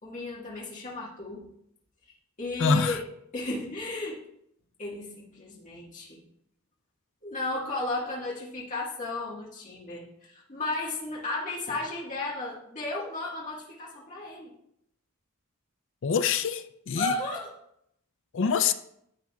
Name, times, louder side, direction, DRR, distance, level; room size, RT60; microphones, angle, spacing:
voice 1, 0.0-1.5 2.0-2.1 2.4-3.0 3.3-4.2 4.8-6.2 7.2-14.5 16.9-17.5 18.4-18.7, left 2 dB, 35° left, 1.6 m, -34 dB
voice 2, 2.6-3.0 16.0-17.1 18.3-18.7, left 6 dB, 55° left, 0.4 m, -25 dB
11.0 x 8.0 x 2.3 m
head